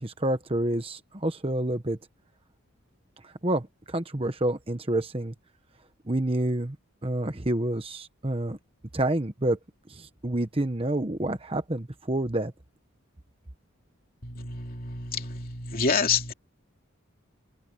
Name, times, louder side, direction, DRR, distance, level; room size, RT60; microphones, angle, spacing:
voice 1, 0.0-2.0 3.2-5.3 6.1-6.8 7.0-8.6 8.9-9.6 9.9-12.5, right 1 dB, 25° right, 1.1 m, -28 dB
voice 2, 14.2-16.3, left 5 dB, 45° left, 2.9 m, -28 dB
head